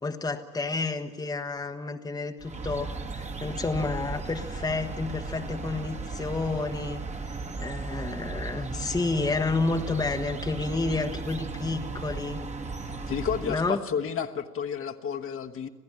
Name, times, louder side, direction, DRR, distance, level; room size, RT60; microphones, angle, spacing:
voice 1, 0.0-7.0 7.3-12.4 13.5-13.8, left 3 dB, 10° left, 5 dB, 1.2 m, -30 dB
sound 1, 2.4-13.8, right 3 dB, 15° right, 1.4 m, -36 dB
voice 2, 13.1-15.7, left 7 dB, 30° left, 5 dB, 1.3 m, -31 dB
26.5 x 16.5 x 7.5 m, 1.2 s
figure-of-eight pair, 70°, 47 cm